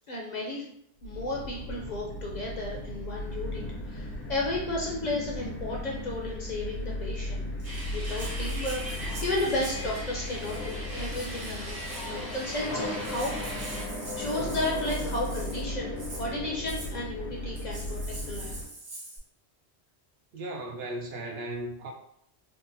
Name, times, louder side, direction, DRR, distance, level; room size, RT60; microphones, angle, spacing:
voice 1, 0.1-0.6 1.0-7.4 7.9-13.3 14.2-18.5, left 1 dB, 50° left, -3 dB, 0.6 m, -33 dB
sound 1, 1.0-18.6, left 1 dB, 80° left, 1.0 m, -36 dB
sound 2, 7.6-13.8, equal, 30° right, 0.5 m, -40 dB
Rattle (instrument), 7.6-9.9 10.4-10.8 11.1-12.2 12.7-12.8 13.0-15.6 16.0-16.3 16.7-16.9 17.5-19.2, right 2 dB, 85° right, 1.2 m, -44 dB
voice 2, 20.3-21.9, right 1 dB, 70° right, 1 dB, 0.8 m, -36 dB
3.7 x 2.1 x 2.6 m, 0.72 s
omnidirectional pair, 1.1 m